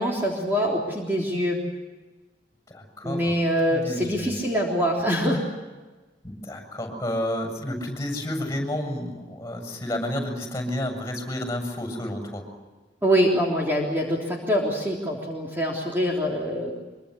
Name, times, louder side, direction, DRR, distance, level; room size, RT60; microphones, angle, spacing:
voice 1, 0.0-1.6 3.0-5.4 13.0-16.7, equal, 10° right, -3 dB, 3.6 m, -24 dB
voice 2, 2.7-3.4 3.7-4.4 6.2-12.5, left 1 dB, 15° left, 4 dB, 7.2 m, -31 dB
25.0 x 24.5 x 8.0 m, 1.2 s
head